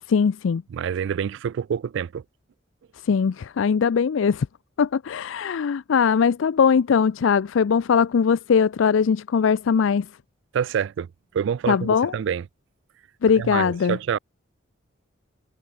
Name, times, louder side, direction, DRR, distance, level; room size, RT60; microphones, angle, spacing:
voice 1, 0.1-0.6 3.0-4.5 4.8-10.1 11.7-12.1 13.2-14.2, left 6 dB, 70° left, 0.4 m, -20 dB
voice 2, 0.7-2.2 10.5-11.1 11.3-12.5 13.4-14.2, right 8 dB, 65° right, 0.3 m, -27 dB
head